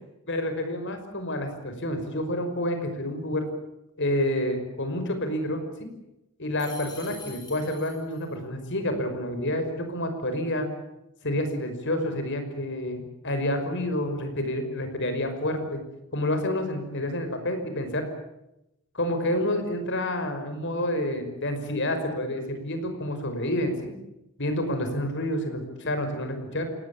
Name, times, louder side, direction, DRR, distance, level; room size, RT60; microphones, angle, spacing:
voice 1, 0.3-3.5 4.0-5.6 6.4-10.7 11.2-15.8 16.1-18.0 18.9-23.9 24.4-26.6, left 1 dB, 55° left, 7 dB, 5.7 m, -29 dB
sound 1, 6.6-8.3, left 5 dB, 20° left, 7.8 m, -45 dB
27.5 x 19.0 x 8.7 m, 0.89 s
head